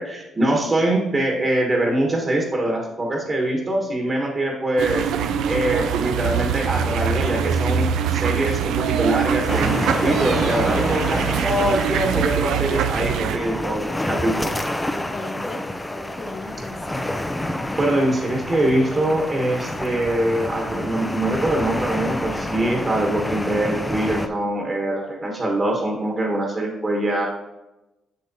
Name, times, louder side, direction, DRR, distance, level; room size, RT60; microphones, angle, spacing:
voice 1, 0.0-5.1 5.4-14.6 17.7-27.3, right 1 dB, 30° right, 0 dB, 1.3 m, -23 dB
sound 1, 4.8-13.4, right 7 dB, 85° right, 0.4 m, -23 dB
sound 2, 9.5-24.3, left 1 dB, 10° left, 0.5 m, -28 dB
voice 2, 14.8-15.6 15.9-17.1, left 2 dB, 40° left, 2 dB, 1.3 m, -36 dB
8.2 x 6.5 x 2.7 m, 1.0 s
cardioid pair, 90°, 0 cm